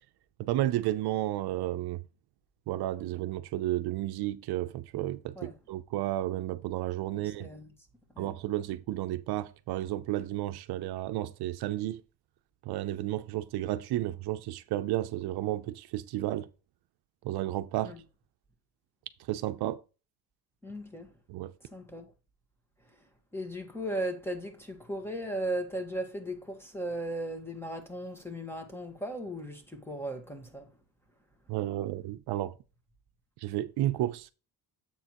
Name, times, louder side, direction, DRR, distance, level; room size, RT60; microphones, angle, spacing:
voice 1, 0.4-2.0 2.7-7.5 8.2-12.0 12.7-16.5 17.2-17.9 19.3-19.8 21.3-21.5 31.5-32.5 33.4-34.3, right 14 dB, 75° right, 0.7 m, -32 dB
voice 2, 7.1-7.7 8.1-8.3 17.8-18.0 20.6-21.1 21.6-22.1 23.3-30.7, right 1 dB, 5° left, 1.5 m, -37 dB
7.7 x 6.5 x 3.0 m
cardioid pair, 120°, 39 cm